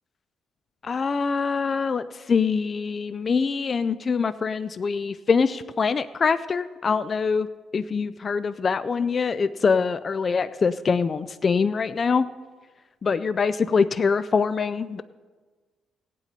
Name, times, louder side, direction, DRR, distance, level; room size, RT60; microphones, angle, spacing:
voice 1, 0.8-7.5 7.7-12.3 13.0-15.0, left 5 dB, 40° left, 14 dB, 0.4 m, -24 dB
17.5 x 8.9 x 4.2 m, 1.4 s
cardioid pair, 90°, 0 cm